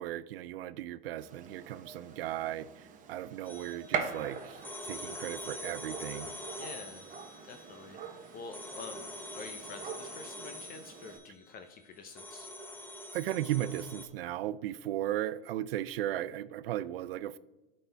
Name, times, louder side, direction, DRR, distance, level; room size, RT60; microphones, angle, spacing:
voice 1, 0.0-6.3 13.1-17.4, right 13 dB, 75° right, 0.5 m, -36 dB
Gunshot gunfire, 1.2-11.2, right 6 dB, 25° right, 1.0 m, -43 dB
sound 1, 3.5-14.1, left 1 dB, 5° left, 1.1 m, -45 dB
voice 2, 6.6-7.1 7.5-8.0 8.3-9.1 9.3-12.5, left 4 dB, 30° left, 0.7 m, -47 dB
11.5 x 4.3 x 3.4 m
hypercardioid pair, 120°, 29 cm